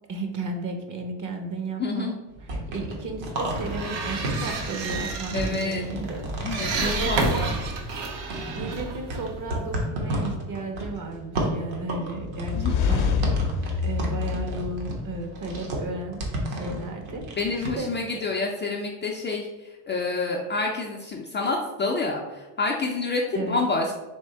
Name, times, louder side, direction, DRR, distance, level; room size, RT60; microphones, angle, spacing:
voice 1, 0.1-2.1 2.7-6.2 6.8-7.4 8.5-13.1 13.8-17.4 17.8-17.9 23.3-23.6, right 2 dB, 40° right, 4 dB, 0.9 m, -34 dB
voice 2, 1.8-2.2 5.3-5.9 6.4-7.6 12.0-12.1 12.5-12.8 17.4-23.9, left 3 dB, 25° left, 0 dB, 0.4 m, -28 dB
sound 1, 2.3-7.9 8.3-17.7, right 1 dB, 60° right, 1.3 m, -32 dB
sound 2, 3.4-9.9, right 3 dB, 80° right, 0.9 m, -31 dB
sound 3, 12.3-15.3, left 6 dB, 65° left, 0.7 m, -26 dB
3.6 x 3.1 x 4.2 m, 1.1 s
supercardioid pair, 100°, 50 cm